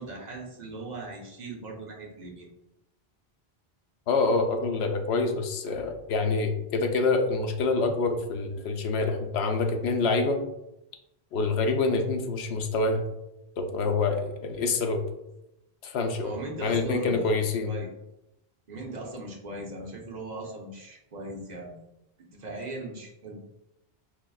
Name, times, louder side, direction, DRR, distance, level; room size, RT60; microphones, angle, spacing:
voice 1, 0.0-2.5 16.2-17.3 17.6-17.9 18.7-21.8 22.2-23.4, right 2 dB, 45° right, -1 dB, 0.9 m, -39 dB
voice 2, 4.1-10.4 11.3-13.0 13.6-15.0 15.8-16.3 16.6-17.7, left 3 dB, 85° left, 5 dB, 0.8 m, -26 dB
4.8 x 2.9 x 2.3 m, 0.88 s
omnidirectional pair, 1.1 m